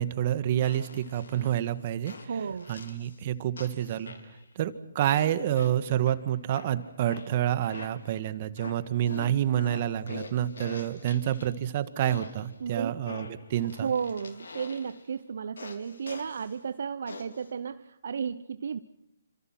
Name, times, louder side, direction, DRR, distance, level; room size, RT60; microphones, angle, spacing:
voice 1, 0.0-2.1 2.7-4.1 4.5-13.9, right 11 dB, 40° right, 12 dB, 1.7 m, -28 dB
sound 1, 0.6-1.6 2.1-3.2 3.6-4.5 5.1-6.2 6.6-8.2 8.6-11.7 12.1-12.5 13.1-15.1 15.6-16.5 17.1-17.5, left 3 dB, 70° left, 4.0 m, -44 dB
voice 2, 2.3-2.7 12.6-13.0 13.8-18.8, right 6 dB, 60° right, 12 dB, 0.8 m, -33 dB
28.5 x 26.5 x 6.1 m, 0.87 s
figure-of-eight pair, 140°, 0 cm